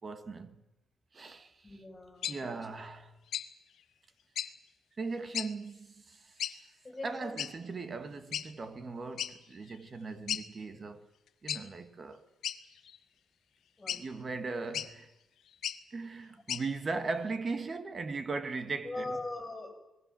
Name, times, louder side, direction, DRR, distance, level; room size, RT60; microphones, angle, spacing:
voice 1, 0.0-0.6 1.1-1.8 2.3-3.2 5.0-6.5 7.0-11.1 11.4-12.3 13.9-15.1 15.9-19.2, right 4 dB, 35° right, 1.8 m, -38 dB
voice 2, 1.6-2.5 6.8-7.4 13.8-14.0 18.8-19.7, left 2 dB, 15° left, 7.9 m, -40 dB
sound 1, 2.2-2.4 3.3-3.5 4.3-4.5 5.3-5.5 6.4-6.6 7.4-7.5 8.3-8.5 9.2-9.3 9.7-9.8 10.3-10.4 11.5-11.6 12.4-13.0 13.9-14.0 14.7-14.9 15.5-15.8 16.5-16.6, left 10 dB, 75° left, 1.3 m, -35 dB
29.0 x 20.0 x 7.7 m
cardioid pair, 120°, 0 cm